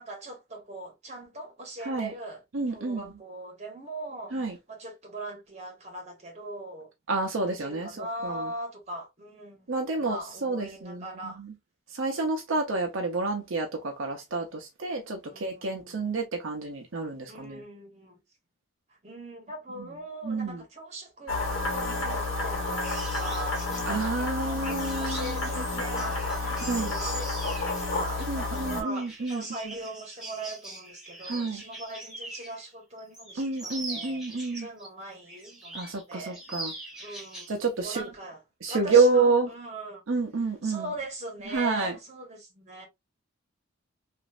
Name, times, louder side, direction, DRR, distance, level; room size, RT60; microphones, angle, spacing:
voice 1, 0.0-6.9 7.6-9.7 10.0-11.4 15.3-16.1 17.3-18.2 19.0-35.8 36.1-37.5 37.8-38.4 38.7-40.0 40.6-42.9, right 2 dB, 30° right, 1.1 m, -41 dB
voice 2, 1.8-2.1 2.5-3.1 4.3-4.6 7.1-8.5 9.7-11.6 11.9-17.6 19.7-19.9 20.2-20.6 23.9-25.8 26.6-26.9 28.2-29.7 31.3-31.6 33.4-34.7 35.7-36.7 37.5-38.1 38.6-39.5 40.1-40.9 41.4-42.0, right 3 dB, 65° right, 0.6 m, -29 dB
sound 1, 21.3-28.8, left 3 dB, 65° left, 1.2 m, -31 dB
sound 2, 22.8-32.6 33.0-34.9 35.3-36.0 36.3-37.6 37.8-38.1, right 1 dB, 5° right, 0.8 m, -42 dB
3.0 x 2.5 x 2.4 m
head